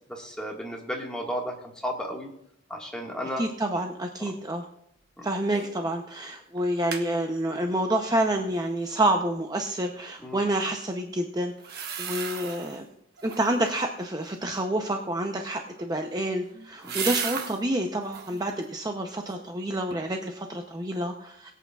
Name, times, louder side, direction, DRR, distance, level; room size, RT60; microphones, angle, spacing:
voice 1, 0.1-1.5 1.8-2.3 2.7-3.4 4.2-4.3 5.2-5.3 10.2-10.4 16.8-17.0, equal, 5° left, -1 dB, 1.6 m, -33 dB
voice 2, 3.4-4.7 5.2-12.8 13.2-21.5, right 1 dB, 20° right, 3 dB, 0.6 m, -28 dB
sound 1, 5.5-5.8 6.1-6.2 6.6-7.1 11.6-12.8 13.2-13.7 15.7-17.6 18.0-18.4 18.9-19.6 19.9-20.0, right 7 dB, 55° right, 1.1 m, -35 dB
21.5 x 8.4 x 2.4 m, 0.73 s
head